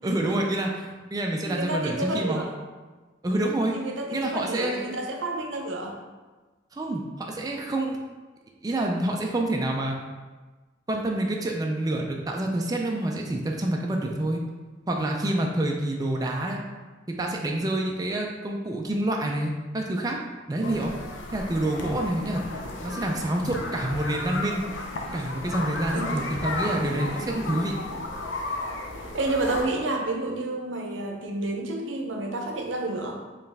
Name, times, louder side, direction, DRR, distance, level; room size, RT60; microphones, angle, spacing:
voice 1, 0.0-2.4 3.2-3.7 4.1-5.0 6.7-8.0 8.6-10.0 10.9-14.4 14.9-16.6 17.1-20.2 20.5-20.9 21.3-22.4 22.8-24.6 25.1-27.7, right 1 dB, 20° right, 0 dB, 0.3 m, -27 dB
voice 2, 1.4-2.5 3.7-6.0 25.8-26.2 29.1-33.2, right 2 dB, 90° right, 2 dB, 0.6 m, -30 dB
sound 1, 20.6-29.6, left 2 dB, 80° left, 0.6 m, -34 dB
4.4 x 3.2 x 3.4 m, 1.3 s
head